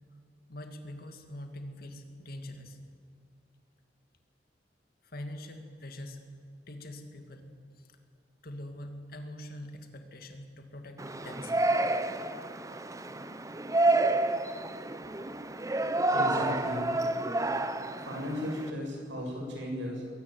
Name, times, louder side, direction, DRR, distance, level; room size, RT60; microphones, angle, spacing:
voice 1, 0.5-2.8 5.0-6.2 6.7-7.5 7.7-8.0 8.4-11.6 16.5-16.6, left 1 dB, 55° left, 6 dB, 2.5 m, -43 dB
Yell, 11.0-18.7, right 2 dB, 20° right, 0.9 m, -29 dB
voice 2, 16.0-16.9 18.0-20.1, left 1 dB, 90° right, 0 dB, 7.4 m, -36 dB
22.5 x 18.0 x 9.1 m, 2.2 s
head